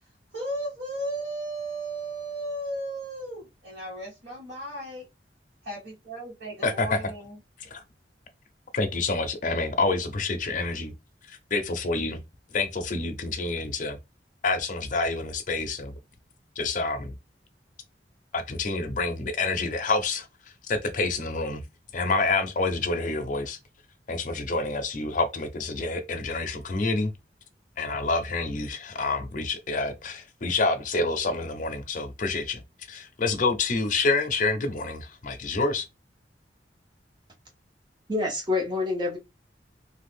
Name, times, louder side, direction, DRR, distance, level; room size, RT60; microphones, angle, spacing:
voice 1, 0.3-5.1 5.6-7.4, right 1 dB, 70° right, 1.4 m, -35 dB
voice 2, 6.6-7.0 7.6-7.8 8.7-10.9 11.3-12.2 12.5-14.0 14.4-15.9 16.6-17.1 18.3-20.3 20.7-21.6 21.9-23.6 24.1-27.1 27.8-32.6 32.9-35.9, left 3 dB, 45° left, 0.6 m, -27 dB
voice 3, 38.1-39.2, left 3 dB, 25° right, 0.9 m, -27 dB
2.7 x 2.3 x 3.4 m
head